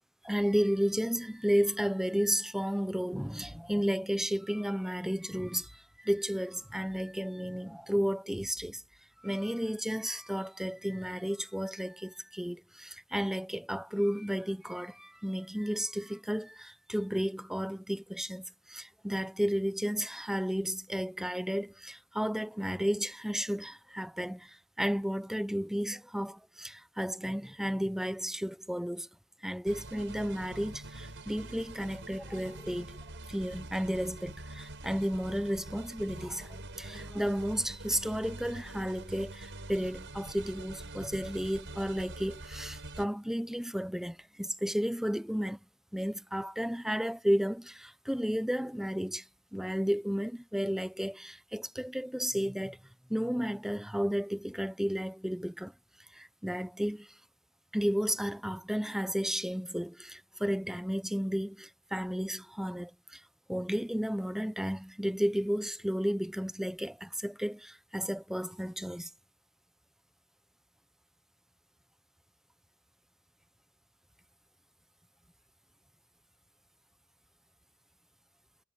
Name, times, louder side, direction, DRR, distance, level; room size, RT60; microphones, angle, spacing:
voice 1, 0.2-8.8 9.2-29.1 29.4-33.0 33.3-45.6 45.9-49.2 49.5-52.8 53.1-55.7 56.1-57.1 57.7-63.2 63.5-69.1, equal, ahead, 0.7 m, -33 dB
sound 1, 29.7-43.1, right 2 dB, 55° right, 6.8 m, -45 dB
head